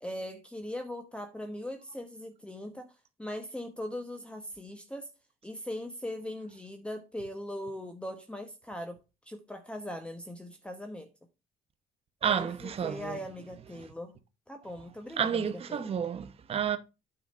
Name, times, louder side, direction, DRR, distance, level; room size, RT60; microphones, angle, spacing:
voice 1, 0.0-2.9 3.2-5.1 5.4-9.0 9.3-11.1 12.2-14.2 14.5-15.9, left 1 dB, 5° left, 1.0 m, -40 dB
voice 2, 12.2-13.2 15.2-16.8, right 8 dB, 35° right, 0.8 m, -30 dB
9.1 x 4.0 x 5.4 m
cardioid pair, 110°, 17 cm